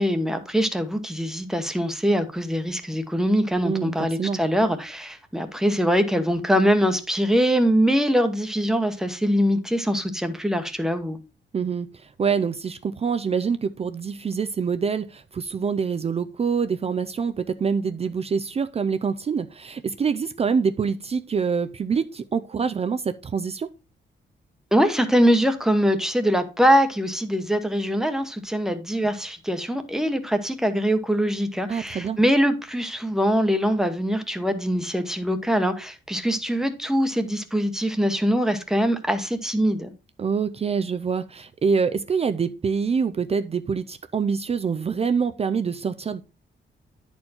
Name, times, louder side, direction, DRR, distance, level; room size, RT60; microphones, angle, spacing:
voice 1, 0.0-11.2 24.7-39.9, equal, ahead, 1.0 m, -23 dB
voice 2, 3.6-4.4 11.5-11.9 12.2-23.7 31.7-32.2 40.2-46.2, right 6 dB, 30° right, 0.4 m, -25 dB
10.0 x 4.5 x 4.2 m
wide cardioid pair, 140°, 19 cm